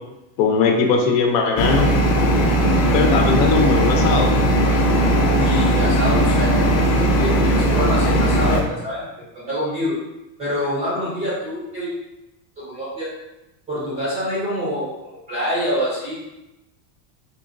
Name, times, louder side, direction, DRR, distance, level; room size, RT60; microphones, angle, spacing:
voice 1, 0.4-1.9 2.9-4.3, left 4 dB, 80° left, 2 dB, 0.8 m, -19 dB
sound 1, 1.6-8.6, right 1 dB, 30° left, 0.6 m, -17 dB
voice 2, 5.2-9.1 9.3-10.0 10.4-11.9 12.6-13.1 13.7-16.1, equal, 15° right, -7 dB, 0.4 m, -26 dB
4.3 x 3.0 x 2.6 m, 0.95 s
cardioid pair, 170°, 50 cm